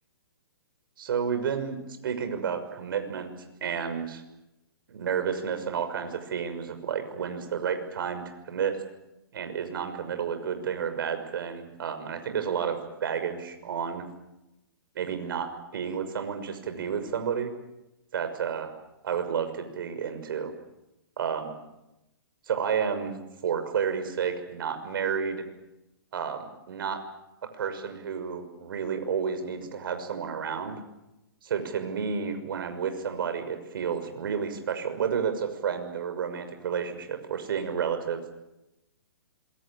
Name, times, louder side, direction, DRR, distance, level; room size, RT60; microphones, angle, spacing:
voice 1, 1.0-3.3 3.6-4.2 4.9-8.8 9.3-14.1 14.9-17.5 18.1-18.7 19.0-20.5 21.2-21.5 22.5-23.1 23.4-25.4 26.1-27.0 27.6-30.8 31.4-38.2, right 7 dB, 65° right, 8 dB, 6.3 m, -31 dB
27.0 x 23.5 x 8.8 m, 0.93 s
hypercardioid pair, 135°, 13 cm